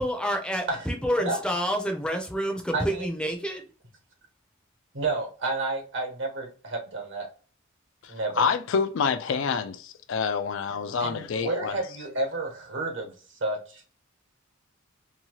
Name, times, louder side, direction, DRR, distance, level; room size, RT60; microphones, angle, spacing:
voice 1, 0.0-3.7, equal, 5° left, 0.5 m, -28 dB
voice 2, 2.7-3.1 4.9-7.3 8.1-8.5 11.0-13.1 13.4-13.8, right 2 dB, 65° right, 1.1 m, -30 dB
voice 3, 8.0-11.8, left 5 dB, 65° left, 0.4 m, -27 dB
2.8 x 2.3 x 2.9 m
head